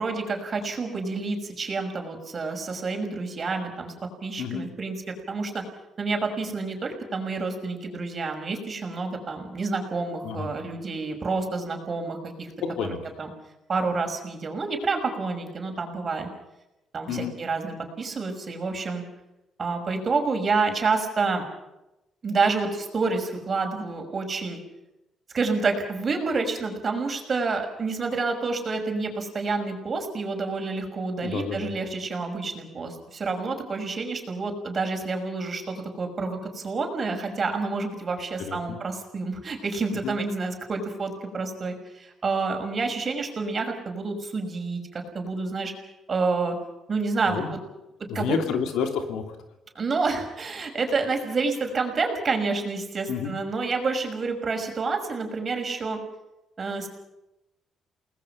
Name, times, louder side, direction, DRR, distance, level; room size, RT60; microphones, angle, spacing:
voice 1, 0.0-3.9 4.2-5.6 6.0-12.5 13.2-13.3 13.7-16.3 16.9-19.0 19.6-21.5 22.2-24.6 25.3-45.7 46.1-46.5 46.9-47.6 48.1-48.3 49.8-56.0 56.6-56.9, right 4 dB, 40° right, 4 dB, 6.0 m, -28 dB
voice 2, 31.2-31.7 38.4-38.8 40.0-40.1 47.3-47.5 48.1-49.4 53.1-53.3, left 6 dB, 85° left, 5 dB, 3.1 m, -29 dB
29.5 x 20.0 x 5.9 m, 0.93 s
cardioid pair, 90°, 0 cm